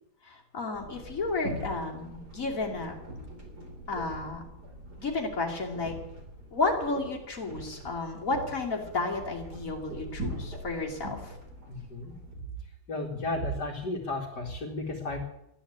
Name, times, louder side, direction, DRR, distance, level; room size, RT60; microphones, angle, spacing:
voice 1, 0.2-2.9 3.9-4.4 5.0-5.9 6.5-11.4, left 3 dB, 55° left, 0 dB, 3.2 m, -32 dB
sound 1, 0.7-12.3, equal, 80° right, 4.2 m, -42 dB
voice 2, 11.7-12.2 12.9-15.2, left 1 dB, 85° left, -4 dB, 2.9 m, -33 dB
14.0 x 11.0 x 8.2 m, 0.83 s
omnidirectional pair, 1.7 m